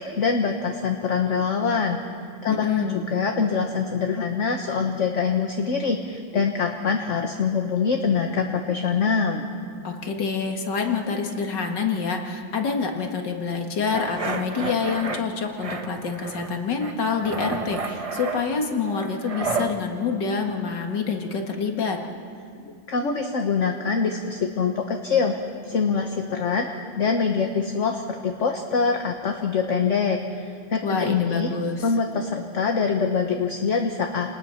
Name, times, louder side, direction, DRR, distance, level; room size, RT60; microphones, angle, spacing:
voice 1, 0.0-2.0 2.4-9.4 22.6-25.4 25.6-26.7 27.0-31.5 31.8-34.3, left 5 dB, 45° left, 3 dB, 1.3 m, -24 dB
voice 2, 2.5-3.0 9.8-22.0 30.8-31.8, left 5 dB, 65° left, 3 dB, 2.4 m, -27 dB
sound 1, 13.9-15.2 15.6-16.5 16.8-19.7, right 4 dB, 30° right, 0.7 m, -31 dB
29.0 x 19.5 x 5.8 m, 2.3 s
omnidirectional pair, 2.1 m